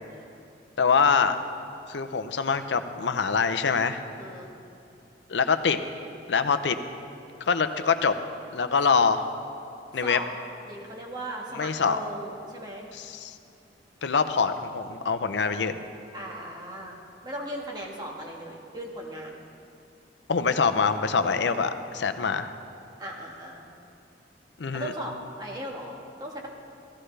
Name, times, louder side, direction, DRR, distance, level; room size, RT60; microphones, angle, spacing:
voice 1, 0.8-1.4 1.9-4.0 5.3-5.8 6.3-6.8 7.5-8.1 8.5-9.2 9.9-10.2 11.6-12.0 13.0-13.3 14.0-15.8 20.3-22.5 24.6-24.9, left 5 dB, 75° left, 9 dB, 0.6 m, -24 dB
voice 2, 4.2-4.5 9.9-10.2 10.7-12.9 16.1-19.4 23.0-23.6 24.7-26.5, right 1 dB, 25° right, -1 dB, 1.6 m, -37 dB
15.5 x 13.0 x 3.3 m, 2.7 s
head